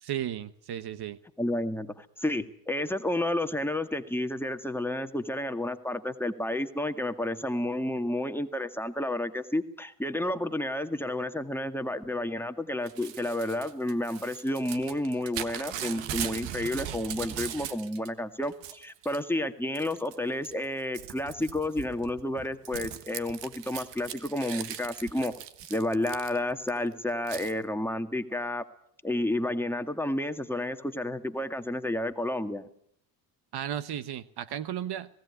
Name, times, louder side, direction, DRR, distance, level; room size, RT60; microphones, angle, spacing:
voice 1, 0.0-1.2 33.5-35.1, right 10 dB, 60° right, 15 dB, 1.2 m, -34 dB
voice 2, 1.4-25.3 25.7-28.6 29.0-32.7, left 1 dB, 5° left, 7 dB, 1.9 m, -31 dB
Crumpling crinkling / Tearing, 12.9-18.1 18.4-19.2 19.7-20.2 20.4-26.7 27.3-27.5, right 10 dB, 80° right, 1.5 m, -39 dB
19.5 x 17.5 x 9.7 m, 0.68 s
cardioid pair, 90°, 43 cm